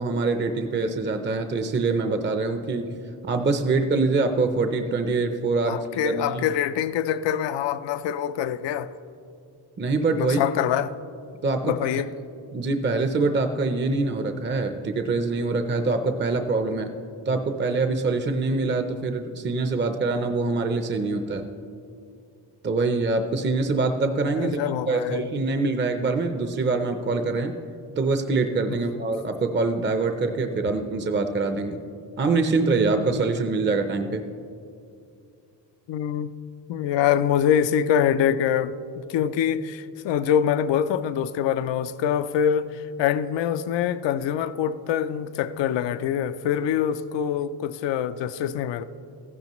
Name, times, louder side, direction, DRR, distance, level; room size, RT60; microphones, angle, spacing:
voice 1, 0.0-2.9 3.2-5.8 6.0-6.4 9.8-10.4 11.4-11.7 12.5-16.9 17.3-21.5 22.6-24.6 24.9-27.6 28.0-31.8 32.2-34.2, right 3 dB, 25° right, 0.6 m, -24 dB
voice 2, 5.7-8.9 10.1-10.9 11.6-12.1 24.4-25.3 35.9-36.3 36.7-48.8, left 9 dB, 70° left, 0.6 m, -25 dB
14.5 x 11.0 x 3.1 m
cardioid pair, 85°, 45 cm